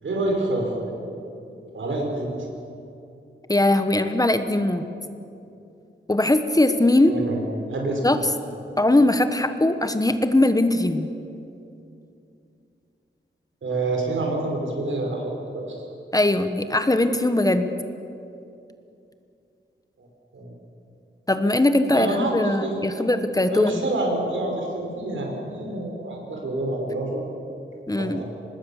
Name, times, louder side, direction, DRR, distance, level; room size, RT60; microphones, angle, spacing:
voice 1, 0.0-1.0 1.7-2.4 7.1-8.3 13.6-15.8 20.0-20.1 20.3-20.6 21.9-23.1 23.5-27.2 27.9-28.2, right 2 dB, 75° right, 1 dB, 5.2 m, -28 dB
voice 2, 3.5-4.8 6.1-7.2 8.0-8.2 8.8-11.1 16.1-17.7 21.3-23.8 27.9-28.2, left 1 dB, 20° left, 8 dB, 1.1 m, -20 dB
25.0 x 20.0 x 7.2 m, 2.7 s
wide cardioid pair, 110°, 20 cm